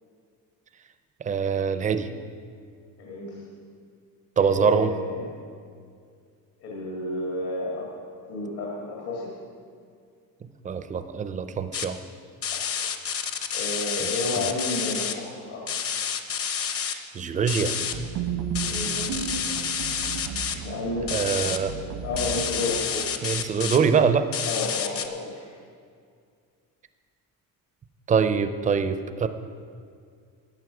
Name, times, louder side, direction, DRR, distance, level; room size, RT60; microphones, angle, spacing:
voice 1, 1.2-2.1 4.4-4.9 10.6-12.0 16.8-17.7 21.1-21.7 23.2-24.3 28.1-29.3, right 6 dB, 20° right, 10 dB, 0.4 m, -24 dB
voice 2, 3.0-3.4 4.4-5.3 6.6-7.9 8.3-9.3 12.5-12.7 13.5-15.7 18.6-19.3 20.6-23.2 24.5-25.5, left 2 dB, 75° left, -3 dB, 2.1 m, -31 dB
sound 1, 11.7-11.8 12.4-15.1 15.7-16.9 17.5-17.9 18.5-20.5 21.1-21.6 22.2-23.8 24.3-25.1, left 7 dB, 40° left, 0.7 m, -29 dB
sound 2, 17.8-22.8, right 7 dB, 85° right, 1.0 m, -34 dB
13.5 x 9.2 x 4.8 m, 2.2 s
cardioid pair, 170°, 37 cm